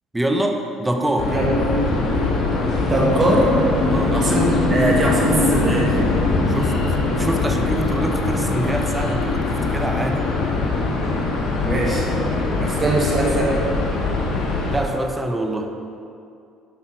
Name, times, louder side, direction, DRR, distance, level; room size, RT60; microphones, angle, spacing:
voice 1, 0.1-1.3 3.9-4.2 6.5-6.8 7.1-10.2 14.7-15.7, right 1 dB, 10° right, 3 dB, 1.1 m, -25 dB
sound 1, 1.2-14.8, left 3 dB, 60° left, 1.9 m, -21 dB
voice 2, 2.9-3.5 4.1-6.0 11.6-12.1 12.6-13.6, right 2 dB, 30° right, -3 dB, 1.9 m, -21 dB
10.5 x 5.7 x 4.7 m, 2.5 s
supercardioid pair, 75°, 0 cm